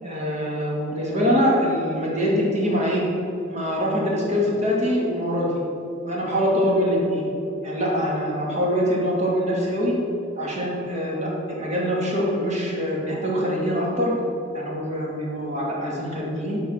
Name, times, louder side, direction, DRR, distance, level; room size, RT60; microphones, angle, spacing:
voice 1, 0.0-3.0 3.5-5.6 6.1-7.2 7.6-10.0 10.4-14.1 14.5-16.6, equal, 35° right, -4 dB, 2.2 m, -24 dB
12.5 x 4.6 x 6.4 m, 2.8 s
head